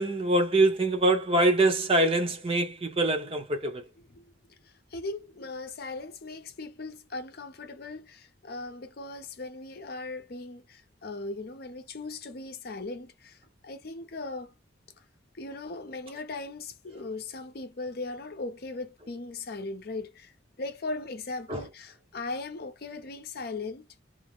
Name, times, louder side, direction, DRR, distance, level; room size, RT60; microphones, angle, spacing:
voice 1, 0.0-3.8 21.5-21.6, right 2 dB, 30° right, 0.7 m, -24 dB
voice 2, 4.6-13.4 13.6-14.5 15.4-20.3 20.6-23.9, left 3 dB, 55° left, 0.6 m, -38 dB
2.5 x 2.0 x 3.1 m
head